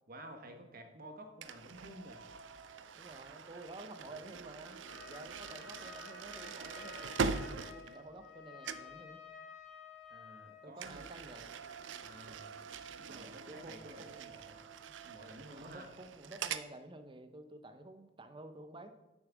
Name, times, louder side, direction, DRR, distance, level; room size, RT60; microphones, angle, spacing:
voice 1, 0.1-2.2 10.1-11.0 12.0-12.6 13.0-14.6 15.0-15.9, right 1 dB, 45° right, 5 dB, 1.2 m, -52 dB
sound 1, 1.4-8.4 8.6-9.0 10.8-16.7, right 5 dB, 65° right, 0.5 m, -43 dB
voice 2, 2.9-9.2 10.6-11.5 13.1-14.1 15.5-18.9, right 1 dB, 25° right, 8 dB, 0.6 m, -51 dB
Trumpet, 4.8-10.7, left 6 dB, 55° left, 2.9 m, -52 dB
7.2 x 6.4 x 6.1 m, 1.1 s
head